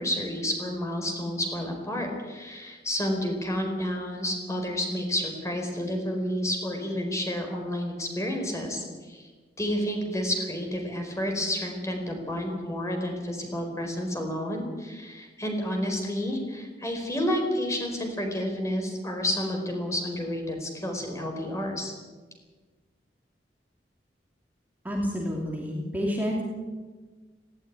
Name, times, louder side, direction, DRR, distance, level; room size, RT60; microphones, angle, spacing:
voice 1, 0.0-9.3 9.6-21.9, left 1 dB, 20° left, 3 dB, 4.6 m, -30 dB
voice 2, 24.8-26.4, equal, 10° right, -2 dB, 2.7 m, -29 dB
18.5 x 16.5 x 9.9 m, 1.4 s
head